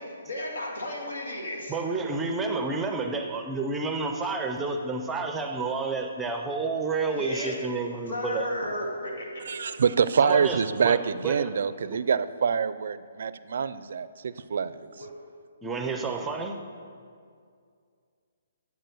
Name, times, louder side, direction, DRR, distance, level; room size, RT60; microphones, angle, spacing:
voice 1, 0.0-1.8 7.1-7.6 8.1-9.6 15.0-15.1, left 1 dB, 90° left, -1 dB, 2.4 m, -34 dB
voice 2, 1.7-8.4 10.2-11.5 11.9-12.0 15.6-16.6, right 4 dB, 5° right, 5 dB, 0.5 m, -30 dB
voice 3, 9.5-14.9, right 6 dB, 60° right, 15 dB, 0.4 m, -26 dB
8.4 x 6.8 x 7.9 m, 2.2 s
hypercardioid pair, 170°, 0 cm